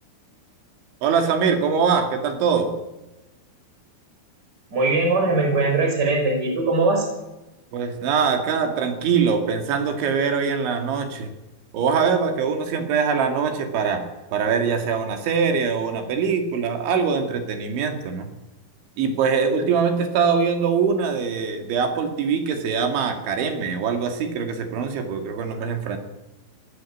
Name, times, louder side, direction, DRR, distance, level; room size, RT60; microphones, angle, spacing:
voice 1, 1.0-2.8 7.7-11.3 11.7-14.1 14.3-18.3 19.0-26.0, right 6 dB, 70° right, 6 dB, 4.5 m, -23 dB
voice 2, 4.7-7.1, right 3 dB, 20° right, 2 dB, 5.5 m, -20 dB
21.5 x 16.0 x 8.6 m, 1.0 s
omnidirectional pair, 5.8 m